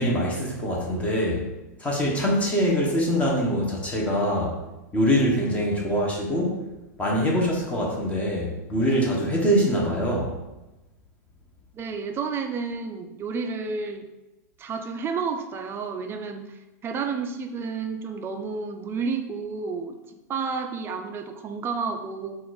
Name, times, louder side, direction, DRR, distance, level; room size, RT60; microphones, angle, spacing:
voice 1, 0.0-1.5 1.8-4.6 4.9-6.6 7.0-10.4, equal, 15° left, -2 dB, 1.1 m, -24 dB
voice 2, 11.7-14.1 14.6-22.4, right 5 dB, 25° right, 5 dB, 0.5 m, -31 dB
4.3 x 2.6 x 4.0 m, 1.0 s
hypercardioid pair, 115°, 9 cm